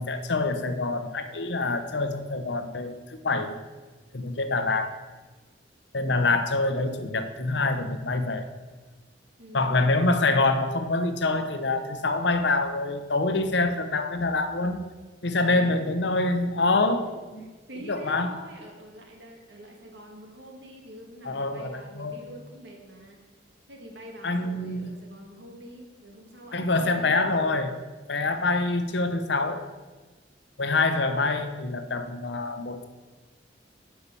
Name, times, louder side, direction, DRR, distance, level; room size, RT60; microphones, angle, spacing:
voice 1, 0.0-3.6 4.1-5.0 5.9-8.4 9.5-14.8 15.2-17.5 17.9-18.3 21.2-22.2 24.2-24.9 26.5-27.8 28.1-29.7 30.6-32.9, left 3 dB, 65° left, 9 dB, 0.9 m, -26 dB
voice 2, 9.4-9.9 15.5-15.9 17.0-17.1 17.4-23.3 23.7-27.3, right 1 dB, 65° right, 1 dB, 1.9 m, -46 dB
9.8 x 5.7 x 6.9 m, 1.3 s
head